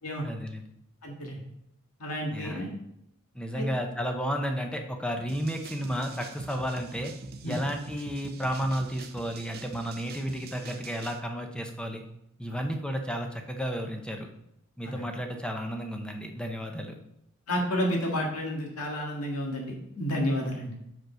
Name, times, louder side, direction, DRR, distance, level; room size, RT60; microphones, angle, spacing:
voice 1, 0.2-0.6 2.3-2.6 3.3-7.1 7.4-12.0 12.4-14.3 14.8-17.0, equal, 5° left, 4 dB, 0.7 m, -32 dB
voice 2, 1.0-1.4 2.0-2.7 3.5-3.6 7.4-7.6 12.5-12.6 14.8-15.0 17.5-20.7, equal, 75° left, 0 dB, 1.8 m, -31 dB
sound 1, 5.3-11.2, right 4 dB, 45° right, 0.5 m, -45 dB
6.2 x 5.1 x 5.2 m, 0.78 s
head